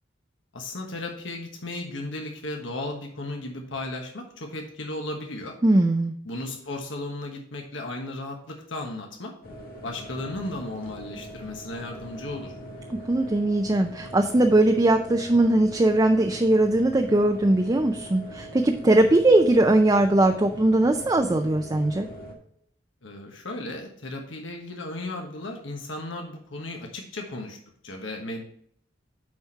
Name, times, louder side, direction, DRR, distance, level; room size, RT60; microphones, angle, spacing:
voice 1, 0.5-5.6 6.2-9.3 9.8-12.5 23.0-27.6 27.8-28.4, left 2 dB, 85° left, 2 dB, 1.3 m, -35 dB
voice 2, 5.6-6.1 12.9-22.1, right 2 dB, 20° right, 5 dB, 0.5 m, -20 dB
sound 1, 9.4-22.3, equal, 50° left, 1.7 m, -41 dB
9.4 x 4.3 x 4.5 m, 0.65 s
head